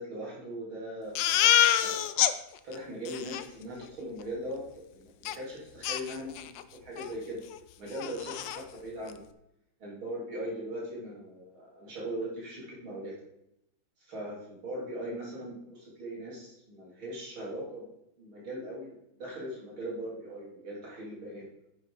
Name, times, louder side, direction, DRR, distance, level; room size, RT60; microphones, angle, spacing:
voice 1, 0.0-2.0 2.6-4.6 4.9-7.4 7.8-9.2 9.8-13.1 14.1-21.4, right 1 dB, 85° right, -5 dB, 4.3 m, -40 dB
Crying sobbing, 1.2-2.3 2.7-2.8 3.1-3.4 5.3-5.4 5.8-6.6 7.0-7.1 7.5-7.6 7.9-8.6, left 11 dB, 70° left, 1.2 m, -26 dB
9.9 x 6.9 x 5.0 m, 0.83 s
omnidirectional pair, 2.2 m